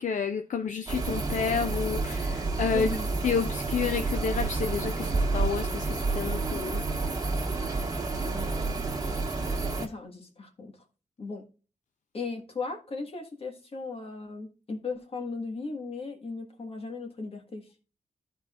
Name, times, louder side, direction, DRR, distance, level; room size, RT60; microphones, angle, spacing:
voice 1, 0.0-2.9 3.2-6.8, left 6 dB, 70° left, 0.5 m, -30 dB
sound 1, 0.9-9.9, right 3 dB, 30° right, 1.8 m, -29 dB
voice 2, 2.7-3.1 8.1-8.8 9.1-9.2 9.8-10.8 11.2-11.5 12.1-17.7, left 4 dB, 45° left, 1.6 m, -37 dB
14.5 x 5.0 x 2.5 m
wide cardioid pair, 110°, 13 cm